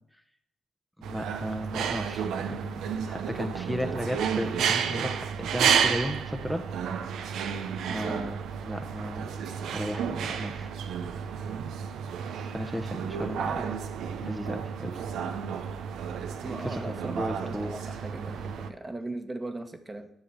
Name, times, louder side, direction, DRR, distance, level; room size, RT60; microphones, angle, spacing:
voice 1, 1.0-6.6 7.9-9.3 9.7-10.7 12.4-13.6 14.2-15.0 16.6-17.9, equal, ahead, 4 dB, 1.0 m, -35 dB
sound 1, 1.0-18.7, right 7 dB, 70° right, 0.6 m, -31 dB
voice 2, 13.4-13.8 16.4-20.1, right 2 dB, 25° right, 7 dB, 1.3 m, -39 dB
8.8 x 6.4 x 7.2 m, 0.77 s
hypercardioid pair, 40°, 0 cm